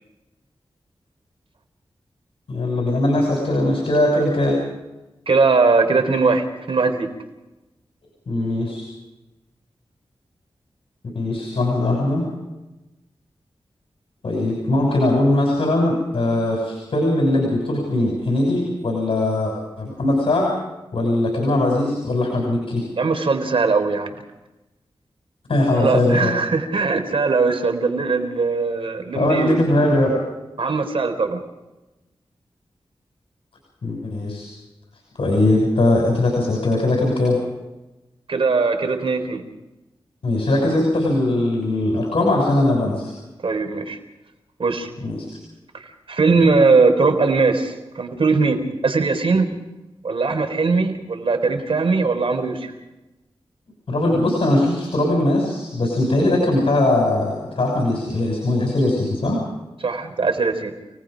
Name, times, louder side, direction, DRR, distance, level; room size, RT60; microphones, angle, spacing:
voice 1, 2.5-4.6 8.3-8.8 11.1-12.3 14.2-20.5 20.9-22.8 25.5-26.3 29.1-30.1 33.8-34.5 35.2-37.4 40.2-43.1 45.0-45.3 53.9-59.4, left 1 dB, 75° left, -1 dB, 6.4 m, -20 dB
voice 2, 5.3-7.1 23.0-24.1 25.7-29.9 30.6-31.4 38.3-39.4 43.4-44.0 44.6-44.9 45.7-49.5 50.0-52.7 59.8-60.7, right 4 dB, 75° right, 7 dB, 3.8 m, -20 dB
29.5 x 19.0 x 5.2 m, 1.0 s
wide cardioid pair, 65°, 9 cm